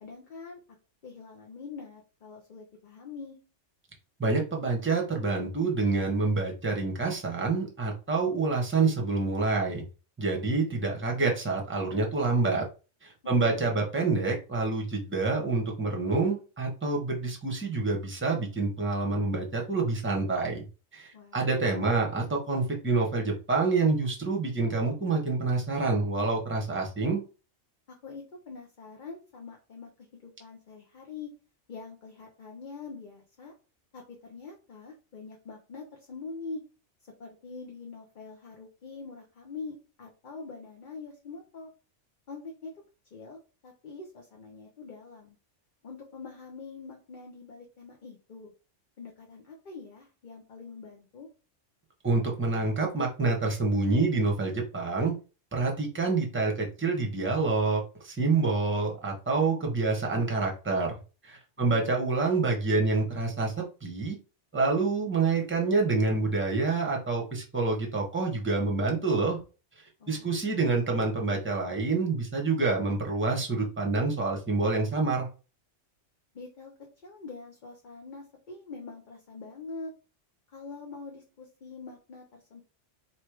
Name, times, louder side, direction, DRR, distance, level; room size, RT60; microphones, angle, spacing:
voice 1, 0.0-0.6 1.0-3.4 13.3-13.6 21.1-21.4 27.9-31.3 31.7-33.5 33.9-36.6 37.2-41.7 42.3-42.7 43.1-45.4 45.8-48.5 49.0-51.3 61.6-61.9 70.0-70.3 76.3-79.9 80.5-82.6, left 4 dB, 45° left, 0 dB, 0.9 m, -44 dB
voice 2, 4.2-9.8 10.2-12.6 13.0-20.6 20.9-27.2 52.0-55.1 55.5-60.9 61.3-63.5 63.8-64.2 64.5-69.4 70.1-75.3, right 3 dB, 10° right, 0 dB, 1.0 m, -27 dB
3.2 x 3.1 x 4.7 m, 0.33 s
omnidirectional pair, 1.3 m